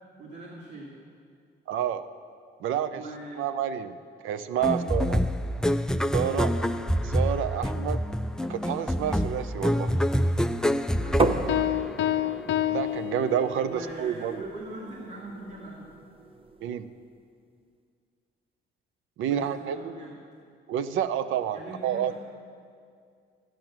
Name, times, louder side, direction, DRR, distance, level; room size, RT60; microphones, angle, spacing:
voice 1, 0.2-0.9 2.9-3.4 4.7-5.0 6.2-6.9 10.9-11.5 13.7-15.9 19.3-20.2 21.5-22.1, right 2 dB, 65° right, -5 dB, 2.2 m, -42 dB
voice 2, 1.7-2.1 2.6-3.0 3.4-4.0 4.2-5.2 6.1-6.5 7.0-8.0 8.5-9.9 12.7-14.4 16.6-16.9 19.2-19.9 20.7-22.1, right 9 dB, 85° right, 11 dB, 0.6 m, -29 dB
sound 1, 4.6-12.2, equal, 5° left, 0.3 m, -26 dB
sound 2, 11.2-16.8, right 3 dB, 25° right, 0.7 m, -33 dB
Piano, 11.5-13.9, left 13 dB, 70° left, 0.5 m, -28 dB
12.0 x 9.2 x 6.0 m, 2.2 s
cardioid pair, 90°, 20 cm